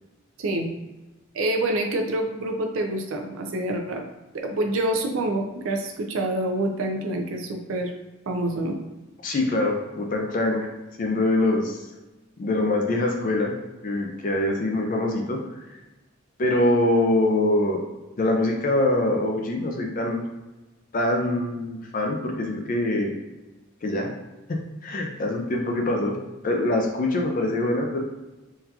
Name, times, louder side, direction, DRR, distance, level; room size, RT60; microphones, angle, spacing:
voice 1, 1.3-4.0 4.3-7.9 8.3-8.8, right 1 dB, 75° right, 3 dB, 0.4 m, -27 dB
voice 2, 9.2-10.7 11.0-11.8 12.4-13.5 13.8-15.8 16.4-17.8 18.2-20.2 20.9-23.1 23.8-24.1 24.5-26.2 26.4-28.0, left 1 dB, 40° left, 1 dB, 0.4 m, -24 dB
3.7 x 2.3 x 2.8 m, 1.1 s
head